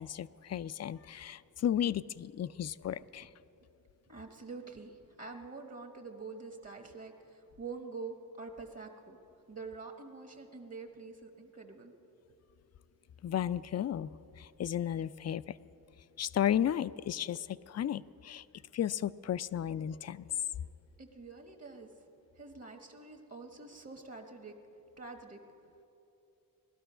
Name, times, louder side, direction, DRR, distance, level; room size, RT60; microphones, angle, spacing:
voice 1, 0.0-3.3 13.2-14.1 14.4-15.6 16.2-18.4 18.7-20.2, left 10 dB, 45° left, 16 dB, 0.4 m, -34 dB
voice 2, 4.1-9.2 9.5-11.9 21.0-21.9 22.3-24.5 25.0-25.4, right 4 dB, 45° right, 3 dB, 1.3 m, -46 dB
19.0 x 12.5 x 5.6 m, 2.9 s
cardioid pair, 90°, 36 cm